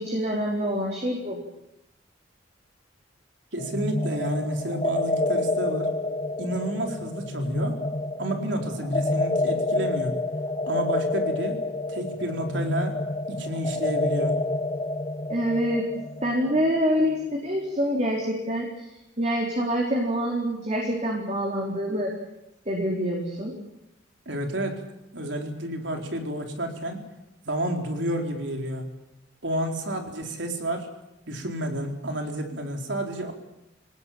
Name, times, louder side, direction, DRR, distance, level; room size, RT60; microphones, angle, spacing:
voice 1, 0.0-1.4 15.3-15.9 16.2-18.7 19.2-22.1 22.7-23.5, equal, 35° right, -2 dB, 4.4 m, -26 dB
voice 2, 3.5-5.9 6.4-7.8 8.2-10.1 10.7-11.6 11.9-13.0 13.3-14.4 24.3-24.8 25.1-27.0 27.4-28.9 29.4-30.9 31.3-33.3, right 1 dB, 75° right, 3 dB, 4.3 m, -30 dB
sound 1, 3.6-17.2, left 2 dB, 30° left, 1.1 m, -28 dB
25.5 x 19.5 x 8.9 m, 0.88 s
head